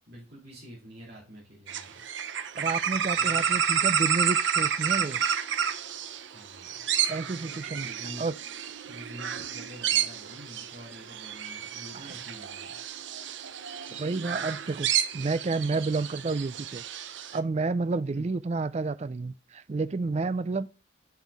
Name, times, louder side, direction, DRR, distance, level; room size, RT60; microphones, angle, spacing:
voice 1, 0.1-2.0 3.1-3.5 6.2-6.7 7.8-8.2 8.8-12.8 18.1-18.3, equal, 55° right, 3.0 m, -47 dB
sound 1, 1.7-17.4, right 8 dB, 75° right, 0.7 m, -30 dB
voice 2, 2.5-5.2 7.1-7.9 8.2-8.3 11.9-12.1 13.9-16.8 17.3-20.7, right 3 dB, 35° right, 0.3 m, -30 dB
7.4 x 5.6 x 3.5 m
head